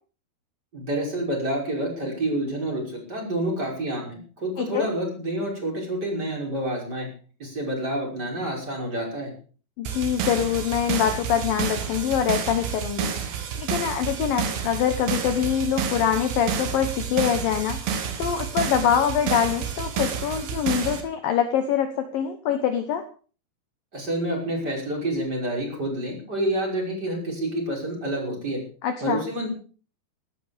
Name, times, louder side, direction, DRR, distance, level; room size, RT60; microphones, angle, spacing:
voice 1, 0.7-7.1 7.4-9.3 23.9-28.6 29.0-29.5, right 1 dB, 20° right, -1 dB, 6.0 m, -28 dB
voice 2, 4.6-4.9 9.8-13.1 13.6-17.8 18.2-23.0 28.8-29.2, left 9 dB, 65° left, 8 dB, 2.4 m, -24 dB
sound 1, 9.9-21.0, right 7 dB, 75° right, 4.2 m, -30 dB
16.0 x 12.5 x 5.2 m, 0.41 s
omnidirectional pair, 5.1 m